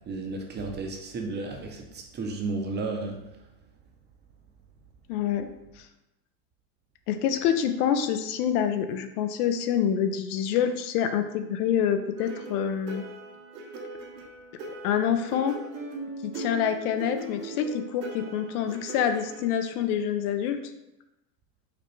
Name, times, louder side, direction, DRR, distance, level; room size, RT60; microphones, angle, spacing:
voice 1, 0.1-3.2, right 3 dB, 20° right, 2 dB, 0.6 m, -33 dB
voice 2, 5.1-5.5 5.8-5.9 7.1-13.0 14.8-15.6 16.2-20.6, left 8 dB, 65° left, 8 dB, 0.6 m, -26 dB
sound 1, 12.2-19.5, right 2 dB, 75° right, 1.1 m, -39 dB
5.0 x 2.2 x 3.1 m, 0.92 s
hypercardioid pair, 100°, 49 cm